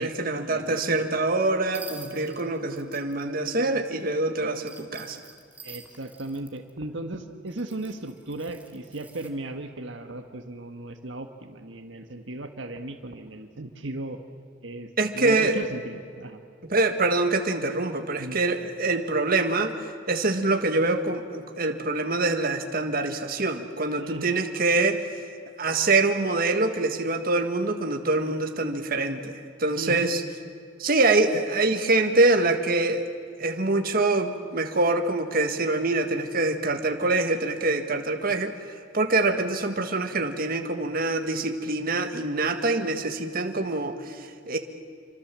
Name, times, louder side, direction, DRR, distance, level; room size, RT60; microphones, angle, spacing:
voice 1, 0.0-5.2 15.0-15.6 16.6-19.8 20.1-25.2 25.6-30.2 30.8-33.1 33.4-38.5 38.9-44.6, right 2 dB, 50° right, 6 dB, 1.7 m, -25 dB
voice 2, 0.5-0.8 5.6-14.2 14.6-16.4 18.2-18.4 24.0-24.4 29.8-30.1, right 2 dB, 70° right, 6 dB, 1.6 m, -36 dB
sound 1, 1.7-3.2 4.6-6.7 7.5-9.3, right 3 dB, 10° right, 2.1 m, -47 dB
28.0 x 25.0 x 7.6 m, 2.2 s
head